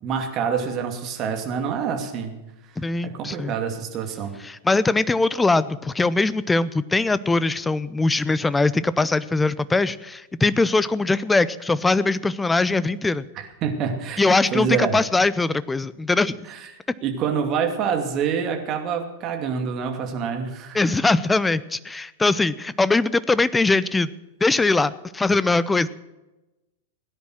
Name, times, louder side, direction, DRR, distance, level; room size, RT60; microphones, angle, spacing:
voice 1, 0.0-2.3 3.0-4.3 13.4-15.0 16.5-16.6 17.0-20.8, right 6 dB, 35° right, 4 dB, 2.5 m, -26 dB
voice 2, 2.8-3.6 4.4-13.3 14.2-16.4 20.7-24.1 24.4-25.9, left 3 dB, 10° left, 17 dB, 0.6 m, -21 dB
17.5 x 10.0 x 6.4 m, 1.0 s
figure-of-eight pair, 95°, 0 cm